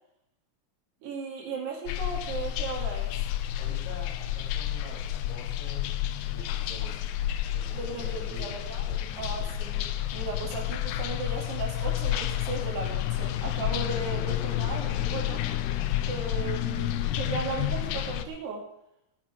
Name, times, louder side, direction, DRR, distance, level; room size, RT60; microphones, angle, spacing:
voice 1, 1.0-3.2 7.7-9.9 10.1-15.5 16.1-18.7, right 4 dB, 60° right, -1 dB, 4.5 m, -36 dB
sound 1, 1.9-18.2, left 12 dB, 80° left, 2.5 m, -30 dB
voice 2, 3.6-5.9 6.2-7.0 7.4-9.6, equal, 55° left, -2 dB, 5.3 m, -46 dB
18.5 x 10.0 x 3.6 m, 0.78 s
omnidirectional pair, 5.5 m